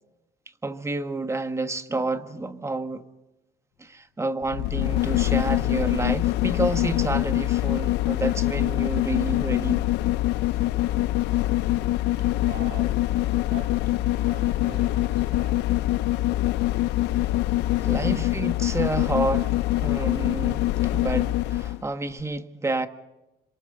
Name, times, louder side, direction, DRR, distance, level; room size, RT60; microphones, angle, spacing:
voice 1, 0.6-3.0 3.8-9.9 17.8-22.9, right 2 dB, 15° right, 1.5 m, -29 dB
sound 1, 4.4-21.8 22.2-22.3, left 16 dB, 90° left, 0.6 m, -24 dB
voice 2, 11.5-18.3, right 5 dB, 80° right, 6.1 m, -45 dB
28.5 x 26.0 x 4.0 m
cardioid pair, 110°, 17 cm